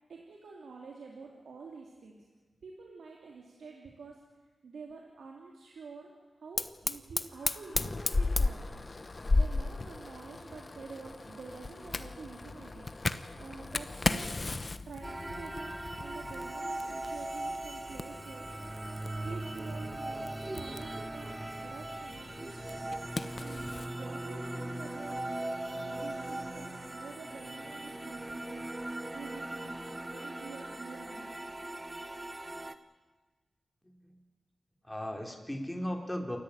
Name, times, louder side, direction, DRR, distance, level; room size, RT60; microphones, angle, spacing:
voice 1, 0.1-2.2 2.6-4.2 4.6-6.1 6.4-8.9 9.3-14.4 14.9-18.7 19.2-20.3 20.6-25.2 25.7-28.7 29.1-31.5, right 4 dB, 90° right, -1 dB, 2.9 m, -48 dB
Fire, 6.6-23.9, left 3 dB, 40° left, 1.0 m, -36 dB
sound 1, 15.0-32.8, right 1 dB, 25° right, 1.4 m, -39 dB
voice 2, 33.8-34.2 34.8-36.4, equal, 10° left, 2 dB, 4.6 m, -37 dB
28.5 x 13.5 x 9.1 m, 1.3 s
cardioid pair, 50°, 0 cm